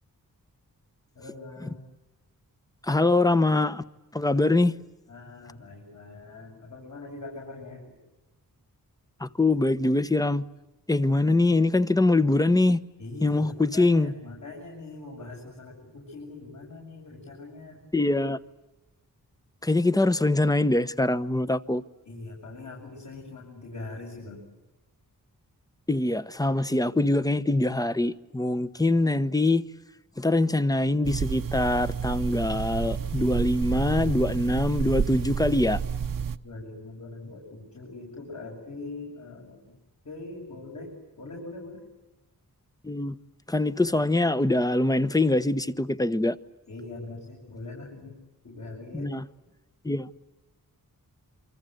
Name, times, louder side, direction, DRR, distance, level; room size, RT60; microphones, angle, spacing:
voice 1, 1.1-1.8 4.3-4.6 5.1-8.0 13.0-17.8 22.1-24.4 36.4-39.7 40.0-40.9 41.2-41.8 46.7-48.1 48.4-49.1, left 2 dB, 55° left, 7.8 m, -42 dB
voice 2, 2.8-3.8 4.1-4.7 9.2-10.4 10.9-12.8 13.2-14.1 17.9-18.4 19.6-21.8 25.9-29.6 30.2-35.8 42.8-43.2 43.5-46.4 48.9-49.2 49.8-50.1, left 2 dB, 10° left, 0.9 m, -23 dB
sound 1, 31.0-36.4, right 7 dB, 65° right, 1.0 m, -30 dB
27.5 x 25.5 x 7.8 m
wide cardioid pair, 125°, 36 cm